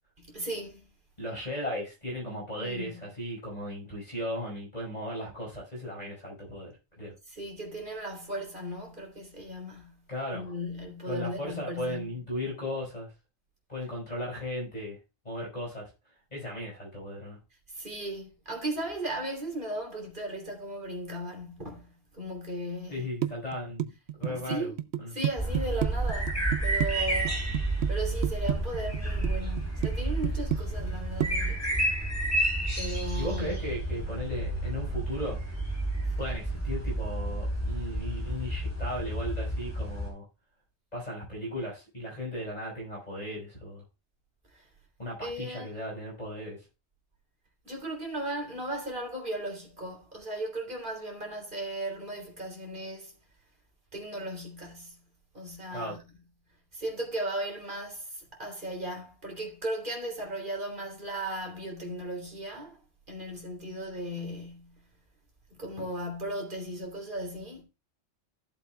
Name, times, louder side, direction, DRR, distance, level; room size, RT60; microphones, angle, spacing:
voice 1, 0.2-0.9 2.6-3.0 7.3-10.0 10.3-12.1 17.7-23.1 24.3-24.8 25.1-31.7 32.8-33.5 44.5-44.7 45.2-45.7 47.6-53.1 53.9-55.0 55.3-56.0 56.7-62.8 63.1-64.8 65.5-67.6, right 1 dB, 45° right, 3.4 m, -36 dB
voice 2, 1.2-7.1 10.1-10.5 11.1-13.1 13.7-15.0 15.3-15.9 16.3-17.4 22.9-23.9 24.2-24.7 25.0-25.1 33.2-35.4 36.2-40.2 40.9-43.8 45.0-46.6 55.7-56.0, left 1 dB, 35° left, 5.2 m, -36 dB
sound 1, 23.2-26.9 27.3-27.9 28.2-29.3 29.6-29.9 30.2-31.0 31.2-31.3, right 12 dB, 70° right, 0.9 m, -29 dB
sound 2, 25.4-40.1, right 1 dB, 15° left, 3.8 m, -30 dB
14.5 x 7.6 x 2.3 m
omnidirectional pair, 1.2 m